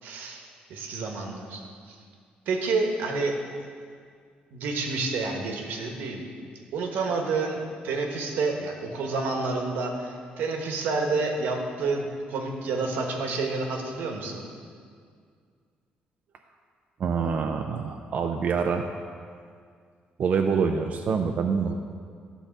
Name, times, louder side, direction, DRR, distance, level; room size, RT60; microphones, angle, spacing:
voice 1, 0.0-2.0 2.5-3.3 4.5-6.2 6.7-7.6 7.8-14.5, right 3 dB, 80° right, 2 dB, 1.3 m, -29 dB
voice 2, 17.0-18.8 20.2-21.7, right 6 dB, 50° right, 4 dB, 0.5 m, -26 dB
12.0 x 4.0 x 7.1 m, 2.1 s
cardioid pair, 120°, 3 cm